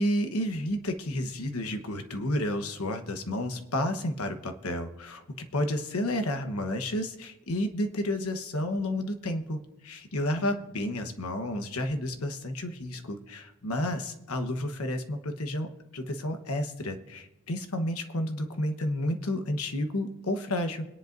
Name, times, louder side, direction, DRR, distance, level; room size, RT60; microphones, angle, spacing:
voice 1, 0.0-5.2 5.5-20.9, left 1 dB, 70° left, 7 dB, 1.1 m, -31 dB
24.5 x 10.5 x 2.6 m, 0.92 s
head